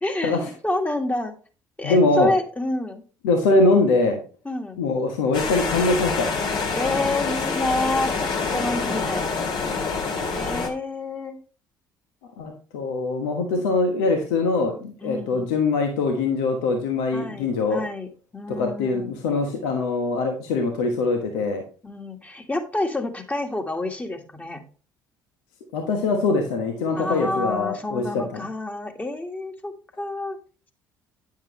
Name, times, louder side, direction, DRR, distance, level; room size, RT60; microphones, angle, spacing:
voice 1, 0.0-1.3 1.8-3.0 4.5-4.8 6.7-9.3 10.3-11.4 15.0-15.5 17.1-18.1 18.3-19.2 21.8-24.6 26.9-30.4, left 2 dB, 15° left, 4 dB, 1.7 m, -28 dB
voice 2, 1.8-2.3 3.2-4.2 4.8-6.3 12.4-17.8 18.5-21.6 25.7-28.4, left 3 dB, 70° left, 5 dB, 1.2 m, -22 dB
sound 1, 5.3-10.7, left 4 dB, 50° left, 1.9 m, -26 dB
9.4 x 7.3 x 3.1 m, 0.38 s
figure-of-eight pair, 55°, 10 cm